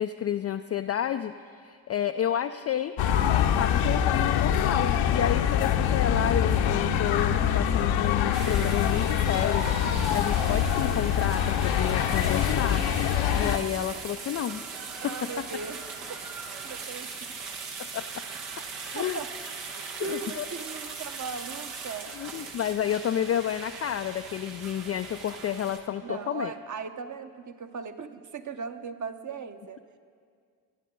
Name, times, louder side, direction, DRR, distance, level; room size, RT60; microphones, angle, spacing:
voice 1, 0.0-3.0 3.3-14.7 15.0-15.4 17.8-18.2 18.8-19.2 20.0-20.5 22.1-26.5, left 10 dB, 30° left, 8 dB, 0.4 m, -31 dB
sound 1, 3.0-13.6, left 9 dB, 65° left, 0.9 m, -24 dB
sound 2, 8.3-25.8, right 5 dB, 70° right, 1.3 m, -40 dB
voice 2, 15.0-15.8 16.6-17.1 18.9-19.3 20.0-22.1 26.0-29.8, right 5 dB, 35° right, 9 dB, 1.0 m, -38 dB
23.5 x 10.0 x 3.9 m, 2.1 s
hypercardioid pair, 40°, 50 cm